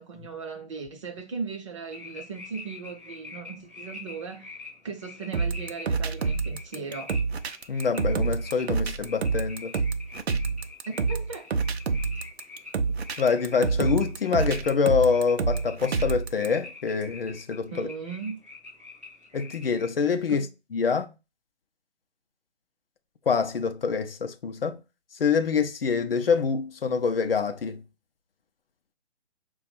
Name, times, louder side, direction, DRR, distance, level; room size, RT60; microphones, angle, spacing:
voice 1, 0.0-4.5 4.8-7.2 10.9-11.5 17.7-18.4 20.3-20.5, right 5 dB, 30° right, 0.8 m, -37 dB
sound 1, 1.9-19.9, left 4 dB, 10° right, 0.4 m, -45 dB
sound 2, 5.3-16.5, right 4 dB, 65° right, 0.6 m, -27 dB
voice 2, 7.7-9.7 13.2-17.9 19.3-20.5 20.7-21.1 23.3-24.8 25.1-27.8, left 5 dB, 60° left, 0.6 m, -25 dB
5.1 x 2.3 x 4.1 m
figure-of-eight pair, 140°, 34 cm